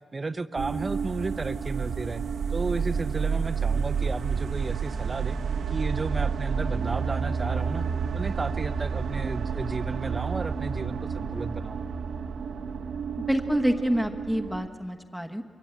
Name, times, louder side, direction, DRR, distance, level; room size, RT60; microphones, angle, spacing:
voice 1, 0.1-2.2 2.5-5.4 5.7-7.9 8.1-11.8, right 3 dB, 30° right, 12 dB, 0.7 m, -33 dB
sound 1, 0.6-14.7, right 6 dB, 80° right, 1.0 m, -30 dB
voice 2, 13.3-15.4, equal, 5° left, 4 dB, 1.1 m, -27 dB
23.5 x 23.0 x 8.7 m, 2.3 s
wide cardioid pair, 115°, 0 cm